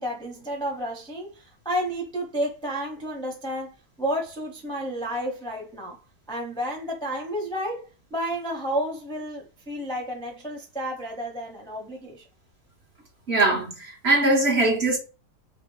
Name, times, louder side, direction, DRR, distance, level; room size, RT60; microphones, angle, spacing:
voice 1, 0.0-6.0 6.3-12.2, equal, 5° left, 0.6 m, -31 dB
voice 2, 13.3-15.0, right 2 dB, 45° right, 1.0 m, -21 dB
3.6 x 2.9 x 3.7 m
omnidirectional pair, 1.9 m